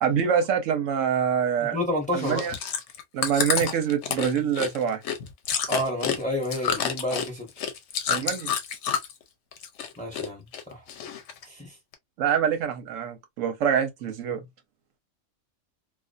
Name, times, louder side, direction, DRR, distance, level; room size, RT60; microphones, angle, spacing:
voice 1, 0.0-1.8 2.1-2.5 3.1-5.0 8.1-8.5 12.2-14.4, right 8 dB, 80° right, 1.0 m, -25 dB
voice 2, 1.6-2.4 5.7-7.5 10.0-10.8 11.4-11.7, left 1 dB, 5° left, 1.0 m, -30 dB
Chewing mastication, 2.1-9.2 9.5-10.3 10.5-11.4 11.9-12.0, left 7 dB, 70° left, 0.9 m, -29 dB
2.5 x 2.3 x 2.4 m
omnidirectional pair, 1.3 m